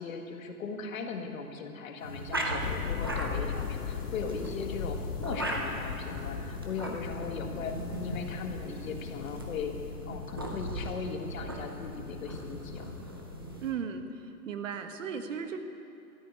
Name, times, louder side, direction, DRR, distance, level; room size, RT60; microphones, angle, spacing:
voice 1, 0.0-7.7 8.0-9.8 10.1-12.9, left 5 dB, 60° left, 4 dB, 1.8 m, -38 dB
sound 1, 2.0-13.7, right 1 dB, 15° right, 0.4 m, -38 dB
sound 2, 2.6-13.6, left 8 dB, 80° left, 1.0 m, -39 dB
voice 2, 13.6-15.6, right 6 dB, 55° right, 7 dB, 1.4 m, -36 dB
13.5 x 10.0 x 9.6 m, 2.7 s
hypercardioid pair, 160°, 46 cm